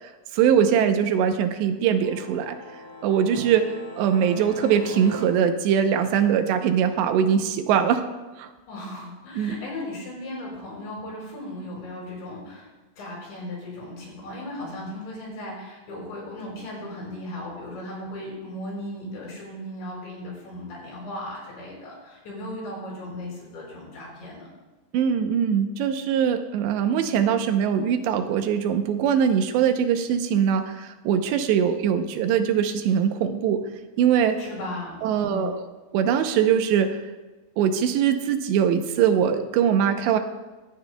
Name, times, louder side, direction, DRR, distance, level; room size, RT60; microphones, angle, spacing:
voice 1, 0.3-2.6 3.0-8.1 8.4-8.5 9.4-9.5 24.9-33.6 34.0-34.4 35.0-35.6 35.9-37.0 37.6-40.2, right 8 dB, 80° right, 7 dB, 3.0 m, -22 dB
sound 1, 2.0-5.2, left 1 dB, 45° left, 3.8 m, -40 dB
voice 2, 8.7-12.7 13.0-24.5 34.4-35.5, left 1 dB, 90° left, -3 dB, 7.3 m, -36 dB
26.0 x 11.5 x 2.3 m, 1.2 s
omnidirectional pair, 5.1 m